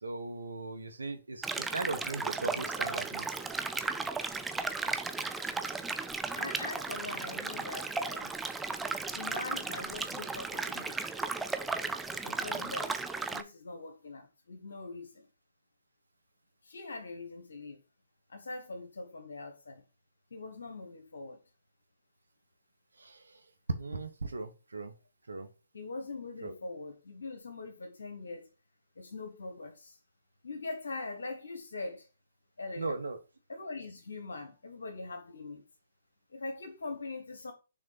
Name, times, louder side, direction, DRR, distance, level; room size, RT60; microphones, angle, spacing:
voice 1, 0.0-3.3 23.0-23.2 23.8-24.9 25.3-25.5 26.4-26.5 32.8-33.2, right 3 dB, 80° right, 1.1 m, -38 dB
sound 1, 1.4-13.4, right 4 dB, 5° right, 0.5 m, -35 dB
voice 2, 6.3-8.3 9.1-11.0 12.2-12.9 13.3-15.3 16.6-17.8 18.3-19.8 20.3-21.4 25.7-28.5 29.0-30.0 30.4-32.1 32.6-32.9 33.5-35.6 36.3-37.5, left 3 dB, 75° left, 1.2 m, -42 dB
6.4 x 3.5 x 5.6 m
figure-of-eight pair, 130°, 0 cm